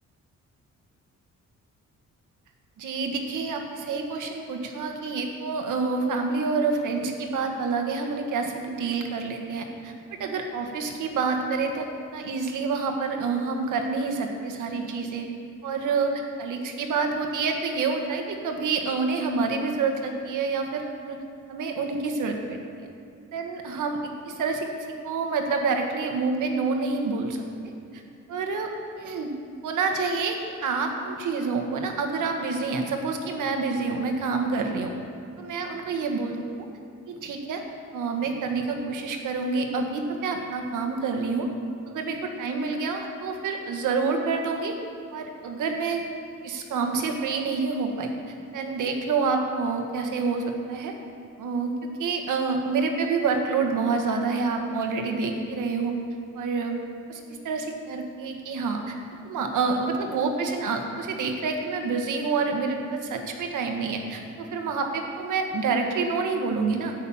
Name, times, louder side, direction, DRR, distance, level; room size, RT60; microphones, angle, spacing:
voice 1, 2.8-9.9 10.2-11.9 12.1-15.3 15.6-21.2 21.5-22.9 23.3-27.4 27.9-28.0 28.3-28.7 29.0-29.3 29.6-34.9 35.4-36.7 37.1-37.6 37.9-41.5 41.9-44.8 45.1-46.0 46.4-50.9 51.4-51.7 52.0-56.0 56.3-56.8 57.1-58.9 59.2-66.9, right 4 dB, 90° right, 3 dB, 1.6 m, -28 dB
13.0 x 9.2 x 5.7 m, 2.5 s
cardioid pair, 115°, 30 cm